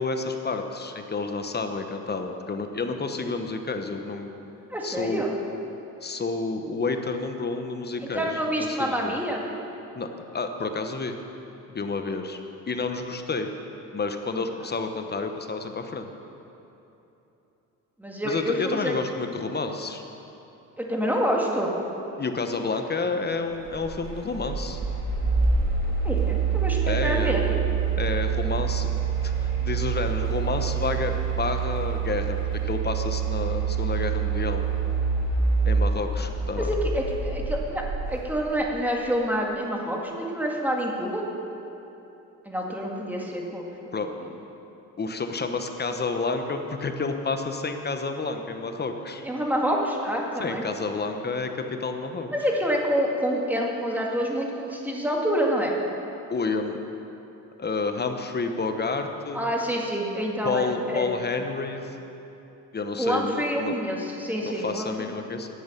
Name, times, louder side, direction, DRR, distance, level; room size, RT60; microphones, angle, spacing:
voice 1, 0.0-4.3 4.8-5.2 6.0-9.1 9.9-11.2 11.7-12.4 12.7-13.5 13.9-16.1 18.2-20.0 22.2-24.8 26.9-27.4 27.9-34.6 35.6-36.7 43.9-44.1 45.0-49.2 50.4-52.3 56.3-56.8 57.6-59.4 60.4-62.0 62.7-63.7 64.4-65.5, left 3 dB, 30° left, 6 dB, 1.0 m, -30 dB
voice 2, 4.7-5.4 8.0-9.4 18.0-19.0 20.8-21.7 26.0-27.6 36.6-37.8 38.1-41.2 42.5-43.9 49.2-50.6 52.3-55.8 59.3-61.1 63.0-64.9, equal, 5° right, -1 dB, 2.1 m, -27 dB
sound 1, 23.6-38.3, right 5 dB, 60° right, 3.2 m, -26 dB
11.0 x 7.9 x 6.7 m, 3.0 s
cardioid pair, 80°, 33 cm